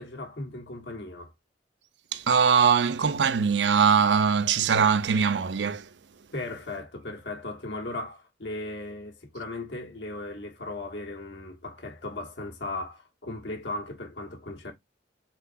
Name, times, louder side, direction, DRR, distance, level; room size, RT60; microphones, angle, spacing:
voice 1, 0.0-1.3 6.3-14.7, left 2 dB, 80° left, 1.6 m, -37 dB
voice 2, 2.1-5.9, right 6 dB, 80° right, 0.6 m, -22 dB
4.4 x 3.9 x 2.6 m
head